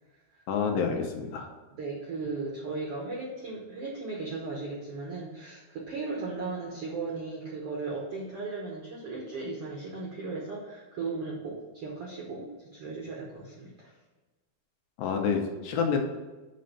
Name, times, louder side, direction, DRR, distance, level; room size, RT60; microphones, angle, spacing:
voice 1, 0.5-1.5 15.0-16.0, left 6 dB, 75° left, 3 dB, 2.3 m, -28 dB
voice 2, 1.7-13.9, right 3 dB, 70° right, -3 dB, 1.4 m, -36 dB
6.6 x 5.3 x 5.5 m, 1.2 s
omnidirectional pair, 4.4 m